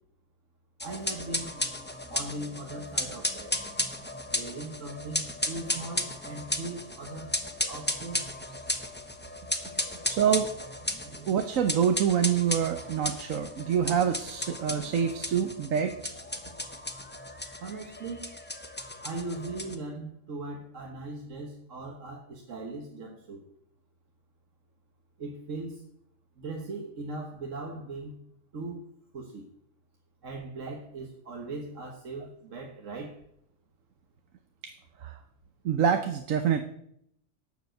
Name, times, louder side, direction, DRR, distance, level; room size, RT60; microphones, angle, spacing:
sound 1, 0.8-19.8, left 1 dB, 10° left, 0.9 m, -35 dB
voice 1, 0.8-1.6 2.1-3.6 4.3-7.4 7.7-8.3 17.6-18.3 19.0-23.4 25.2-25.8 26.4-28.2 28.5-28.8 29.1-29.5 30.2-33.2, right 2 dB, 70° right, 2 dB, 1.7 m, -39 dB
voice 2, 10.1-10.5 11.3-15.9 34.6-34.7 35.0-35.1 35.6-36.6, right 8 dB, 90° right, 7 dB, 1.3 m, -26 dB
12.0 x 7.2 x 7.7 m, 0.72 s
omnidirectional pair, 1.3 m